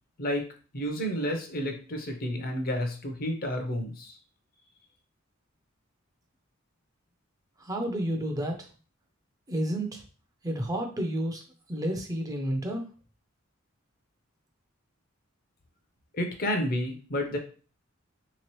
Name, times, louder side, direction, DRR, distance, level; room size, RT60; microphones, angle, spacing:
voice 1, 0.7-4.2 16.1-17.4, equal, 45° left, 4 dB, 0.7 m, -30 dB
voice 2, 7.6-8.5 9.5-10.0 10.4-11.4 11.7-12.8, right 1 dB, 20° right, 2 dB, 0.5 m, -30 dB
3.4 x 3.0 x 3.0 m, 0.38 s
head